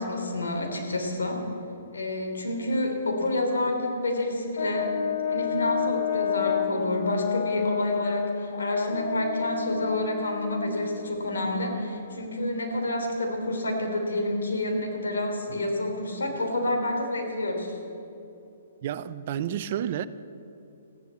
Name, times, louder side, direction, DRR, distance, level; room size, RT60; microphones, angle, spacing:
voice 1, 0.0-1.5 1.9-4.9 5.3-17.8, left 1 dB, 85° left, 2 dB, 3.5 m, -28 dB
Brass instrument, 4.6-11.3, left 7 dB, 65° left, 1.1 m, -30 dB
voice 2, 18.8-20.1, right 10 dB, 45° right, 14 dB, 0.6 m, -30 dB
14.5 x 11.0 x 8.4 m, 2.8 s
hypercardioid pair, 145°, 0 cm